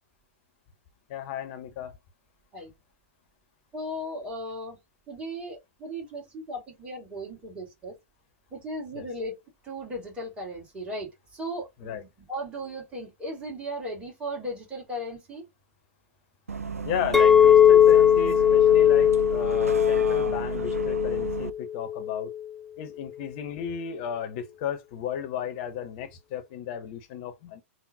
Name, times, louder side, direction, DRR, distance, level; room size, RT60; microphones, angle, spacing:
voice 1, 1.1-1.9 8.9-9.1 11.8-12.0 16.8-22.3 22.8-27.6, left 9 dB, 45° left, 0.7 m, -34 dB
voice 2, 3.7-4.8 5.1-7.9 8.5-9.4 9.6-15.4, equal, 15° right, 1.9 m, -36 dB
Bus, 16.5-21.5, right 5 dB, 85° right, 0.4 m, -34 dB
Chink clink, 17.1-22.4, left 10 dB, 5° left, 0.3 m, -19 dB
3.6 x 2.1 x 2.6 m
figure-of-eight pair, 105°, 8 cm